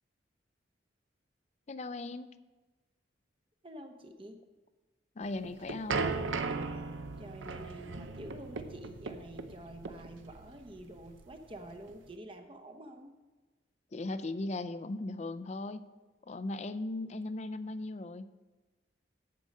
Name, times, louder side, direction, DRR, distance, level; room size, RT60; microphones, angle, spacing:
voice 1, 1.7-2.3 5.2-6.2 13.9-15.9 16.3-18.3, left 2 dB, 35° left, 13 dB, 0.4 m, -38 dB
voice 2, 3.6-4.4 7.2-13.1, right 1 dB, 25° right, 5 dB, 0.8 m, -48 dB
sound 1, 5.2-12.1, right 4 dB, 80° right, 0.7 m, -37 dB
8.4 x 7.6 x 5.3 m, 1.2 s
head